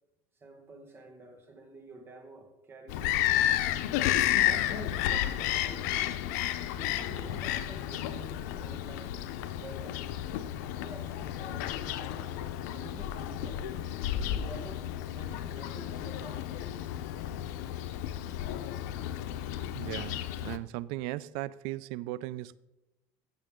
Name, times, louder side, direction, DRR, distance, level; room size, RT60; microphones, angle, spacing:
voice 1, 0.4-3.5 4.4-6.1 6.8-9.1 9.5-10.1 10.7-12.4 12.7-13.7 14.1-16.6, right 2 dB, 25° right, 1.5 m, -49 dB
Bird vocalization bird call bird song, 2.9-20.6, left 12 dB, 85° left, 0.6 m, -32 dB
voice 2, 19.7-22.6, right 16 dB, 70° right, 0.4 m, -37 dB
15.0 x 6.4 x 3.7 m
cardioid pair, 140°, 9 cm